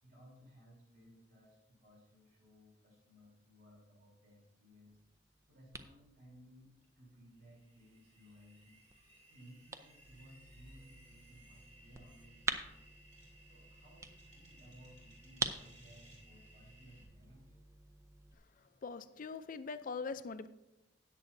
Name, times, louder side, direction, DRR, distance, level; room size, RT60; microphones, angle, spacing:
voice 1, 0.0-5.0 5.5-8.8 9.3-12.9 13.5-17.6, equal, 60° right, -3 dB, 3.5 m, -60 dB
sound 1, 4.9-18.3, right 3 dB, 15° right, 0.5 m, -47 dB
sound 2, 6.8-17.0, right 1 dB, 40° right, 3.3 m, -62 dB
voice 2, 18.6-20.5, left 4 dB, 45° left, 12 dB, 0.5 m, -42 dB
13.5 x 9.2 x 2.7 m, 0.92 s
head